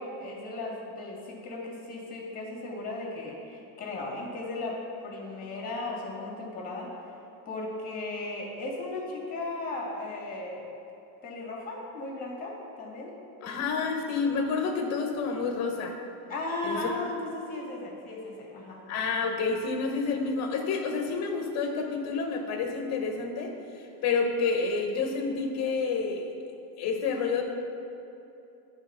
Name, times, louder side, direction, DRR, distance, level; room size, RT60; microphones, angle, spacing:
voice 1, 0.0-6.9 7.5-10.7 11.2-13.1 16.3-18.8, left 2 dB, 20° left, -2 dB, 1.9 m, -36 dB
voice 2, 13.4-16.0 16.6-16.9 18.9-26.3 26.8-27.4, left 4 dB, 35° left, 3 dB, 1.0 m, -29 dB
10.5 x 3.6 x 5.6 m, 2.9 s
supercardioid pair, 140°, 44 cm